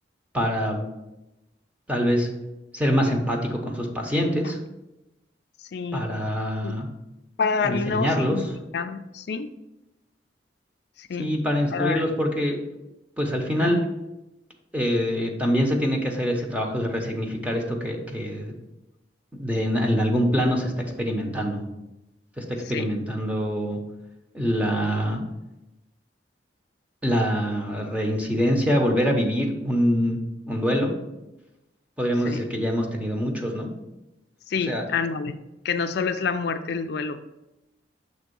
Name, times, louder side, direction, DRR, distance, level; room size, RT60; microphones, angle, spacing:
voice 1, 0.3-0.9 1.9-2.3 2.7-4.6 5.9-6.9 7.6-8.4 11.2-12.6 13.2-13.8 14.7-18.5 19.3-20.7 21.0-21.6 22.4-23.8 24.3-25.2 27.0-30.2 30.5-30.9 32.0-33.7 34.7-34.8, equal, 10° right, 1 dB, 0.9 m, -24 dB
voice 2, 5.7-6.1 6.6-6.7 7.4-8.4 8.7-9.5 11.0-11.3 11.7-12.0 13.6-13.8 22.7-22.9 32.2-32.4 34.5-35.4 35.6-37.2, left 5 dB, 65° left, 8 dB, 0.4 m, -27 dB
6.6 x 3.6 x 5.3 m, 0.95 s
head